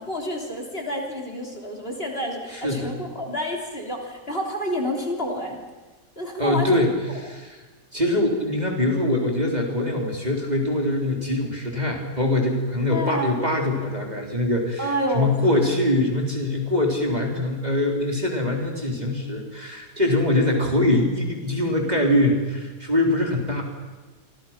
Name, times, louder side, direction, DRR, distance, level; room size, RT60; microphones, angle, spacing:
voice 1, 0.0-5.6 6.2-6.8 12.9-13.4 14.8-15.5, equal, 35° left, 1 dB, 3.7 m, -29 dB
voice 2, 2.5-2.9 6.4-7.6 7.9-14.9 15.1-23.6, left 1 dB, 25° right, 1 dB, 3.8 m, -23 dB
29.5 x 25.5 x 5.9 m, 1.3 s
omnidirectional pair, 1.8 m